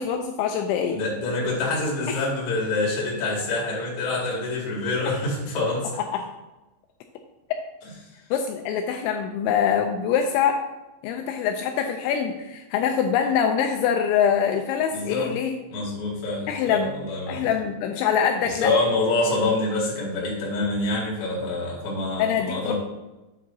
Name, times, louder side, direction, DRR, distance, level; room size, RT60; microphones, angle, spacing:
voice 1, 0.0-1.0 2.1-2.2 5.1-5.2 6.1-6.2 8.3-10.6 11.0-15.6 16.5-16.9 17.3-18.7 22.2-22.7, left 8 dB, 85° left, 4 dB, 2.8 m, -24 dB
voice 2, 0.9-5.9 14.9-15.3 15.7-17.5 18.4-22.7, left 2 dB, 40° left, -5 dB, 2.4 m, -26 dB
8.3 x 7.5 x 2.7 m, 1.0 s
omnidirectional pair, 5.5 m